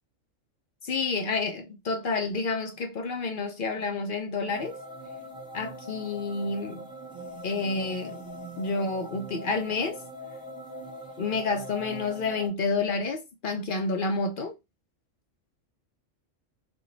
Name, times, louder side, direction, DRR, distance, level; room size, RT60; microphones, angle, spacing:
voice 1, 0.8-4.8 5.5-6.9 7.4-8.2 8.6-10.0 11.2-14.6, left 3 dB, 55° left, 0.6 m, -29 dB
sound 1, 4.5-12.5, equal, 5° right, 0.4 m, -42 dB
2.9 x 2.3 x 3.8 m
omnidirectional pair, 1.3 m